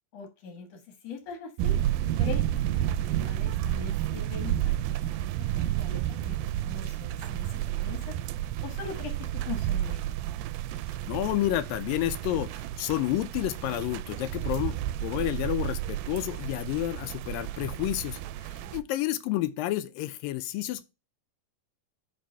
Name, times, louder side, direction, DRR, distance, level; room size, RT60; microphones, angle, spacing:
voice 1, 0.1-1.8 2.1-8.2 8.6-10.0 18.4-18.8, left 5 dB, 55° left, 2.3 m, -42 dB
sound 1, 1.6-18.8, right 12 dB, 85° right, 2.3 m, -31 dB
voice 2, 11.1-20.8, left 14 dB, 80° left, 2.2 m, -30 dB
5.6 x 5.2 x 5.6 m
omnidirectional pair, 4.3 m